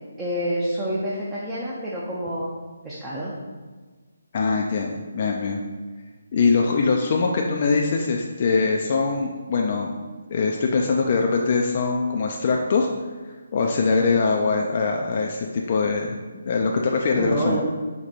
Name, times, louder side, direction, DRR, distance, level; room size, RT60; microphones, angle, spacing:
voice 1, 0.2-2.6 2.8-3.3 17.1-17.6, right 1 dB, 10° right, -7 dB, 0.5 m, -28 dB
voice 2, 4.3-5.6 6.3-10.0 10.3-12.9 13.5-16.2 16.5-17.6, left 4 dB, 40° left, 1 dB, 0.3 m, -22 dB
4.4 x 2.2 x 4.0 m, 1.4 s
hypercardioid pair, 160°, 0 cm